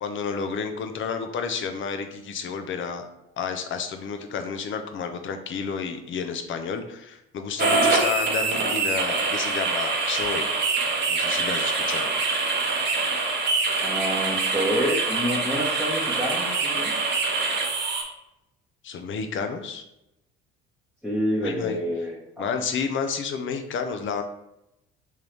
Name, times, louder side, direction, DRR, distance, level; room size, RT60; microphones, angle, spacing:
voice 1, 0.0-3.0 3.4-10.5 11.1-12.1 18.8-19.8 21.4-21.8 22.4-24.2, left 6 dB, 40° left, 6 dB, 0.6 m, -30 dB
sound 1, 7.6-18.0, right 3 dB, 35° right, 1.0 m, -25 dB
voice 2, 13.8-16.9 21.0-22.5, equal, ahead, -6 dB, 1.0 m, -28 dB
3.7 x 3.2 x 3.2 m, 0.86 s
hypercardioid pair, 60°, 31 cm